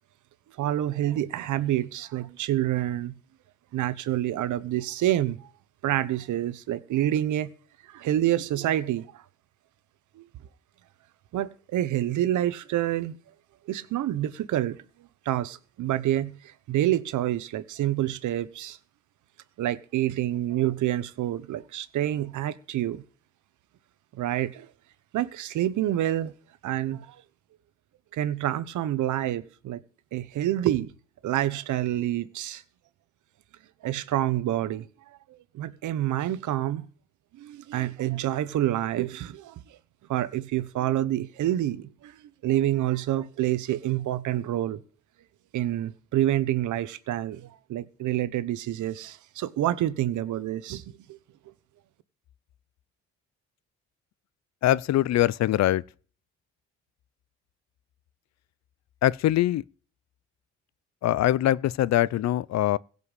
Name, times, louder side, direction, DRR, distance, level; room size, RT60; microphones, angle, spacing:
voice 1, 0.6-3.1 3.7-5.5 5.8-7.5 7.9-9.2 10.2-10.3 11.3-13.1 13.7-14.8 15.2-18.8 19.6-23.0 24.1-24.7 25.1-26.3 26.6-27.2 28.1-29.8 30.1-30.9 31.2-32.6 33.8-34.9 35.5-36.9 37.4-39.6 40.1-44.8 45.5-50.8 51.1-51.2, right 13 dB, 80° right, 1.1 m, -27 dB
voice 2, 54.6-55.8 59.0-59.6 61.0-62.8, left 13 dB, 60° left, 0.5 m, -23 dB
16.5 x 5.5 x 8.1 m
cardioid pair, 90°, 30 cm